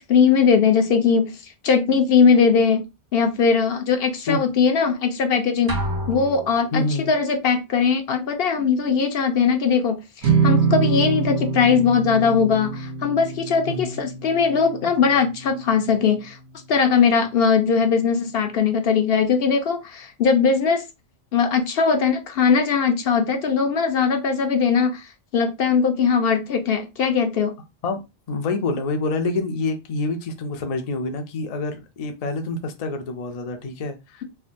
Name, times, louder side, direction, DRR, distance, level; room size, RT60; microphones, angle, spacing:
voice 1, 0.0-2.8 3.1-5.8 6.1-16.4 16.7-20.8 21.3-25.0 25.3-27.5, left 6 dB, 70° left, 0.9 m, -20 dB
sound 1, 5.7-7.1, equal, 35° right, 0.3 m, -30 dB
voice 2, 6.7-7.1 13.7-14.0 27.8-28.0 28.3-34.2, left 3 dB, 50° left, 0.5 m, -27 dB
sound 2, 10.2-16.7, right 5 dB, 85° right, 1.0 m, -25 dB
3.4 x 2.1 x 2.5 m
omnidirectional pair, 1.0 m